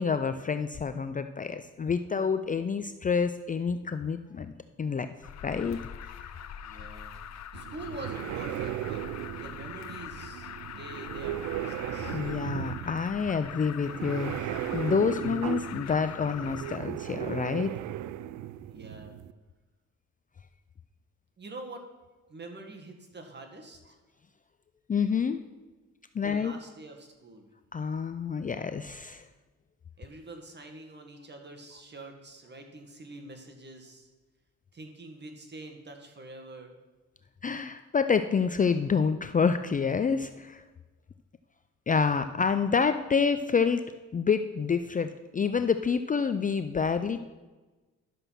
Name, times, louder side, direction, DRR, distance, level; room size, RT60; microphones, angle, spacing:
voice 1, 0.0-4.5 4.8-5.1 5.4-6.3 12.1-17.7 24.9-25.4 26.1-26.5 27.7-29.2 37.4-40.6 41.9-43.8 44.1-47.3, left 6 dB, 25° left, 10 dB, 0.5 m, -28 dB
Alarm, 5.2-16.8, left 9 dB, 60° left, 0.7 m, -43 dB
voice 2, 6.6-7.2 7.5-9.0 9.4-10.5 10.8-12.2 18.6-19.2 21.4-21.9 22.3-24.0 26.2-27.5 30.0-34.1 34.7-36.8, right 2 dB, 35° right, 4 dB, 1.9 m, -45 dB
sound 1, 7.5-19.3, right 13 dB, 80° right, 0.5 m, -36 dB
11.0 x 6.7 x 5.9 m, 1.2 s
cardioid pair, 90°, 30 cm